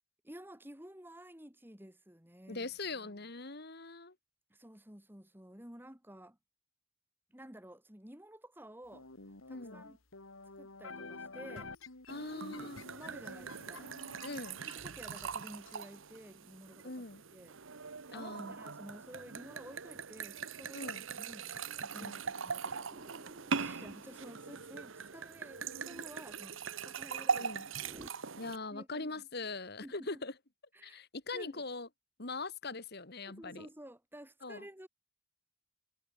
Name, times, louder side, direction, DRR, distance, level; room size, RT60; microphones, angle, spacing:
voice 1, 0.2-2.7 2.9-3.2 4.5-6.4 7.3-9.1 9.5-10.0 10.6-11.7 12.6-13.9 14.7-27.5 27.9-28.4 28.7-29.2 29.8-30.2 30.7-31.0 31.3-31.7 33.3-34.9, right 1 dB, 10° right, 3.1 m, -53 dB
voice 2, 2.5-4.1 9.5-9.9 12.1-12.9 14.2-14.6 16.8-17.2 18.1-18.6 20.7-21.0 21.9-22.2 27.3-27.7 28.4-30.3 30.8-31.9 32.2-33.7 34.4-34.7, left 3 dB, 50° left, 2.2 m, -42 dB
sound 1, 8.9-15.8, left 3 dB, 80° left, 3.0 m, -50 dB
sound 2, 12.1-28.6, right 5 dB, 70° right, 1.2 m, -41 dB
sound 3, 22.9-28.1, right 1 dB, 30° right, 1.5 m, -57 dB
head